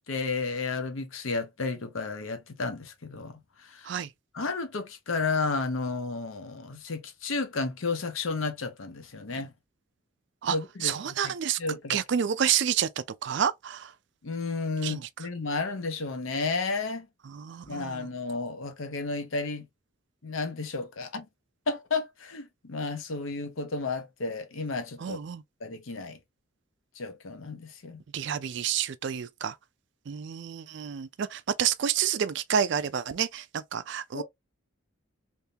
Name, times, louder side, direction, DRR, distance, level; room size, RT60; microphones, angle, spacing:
voice 1, 0.1-3.3 3.7-3.9 4.3-9.5 10.5-11.3 11.6-12.0 14.2-17.1 17.7-19.7 20.2-21.3 21.7-25.2 25.6-26.2 27.0-28.0 34.1-34.2, left 3 dB, 75° left, 0.8 m, -32 dB
voice 2, 10.8-11.6 11.9-12.9 13.2-13.9 14.8-15.0 17.3-18.1 25.0-25.4 28.1-29.5 30.1-34.2, right 8 dB, 55° right, 0.4 m, -29 dB
3.5 x 2.7 x 2.7 m
head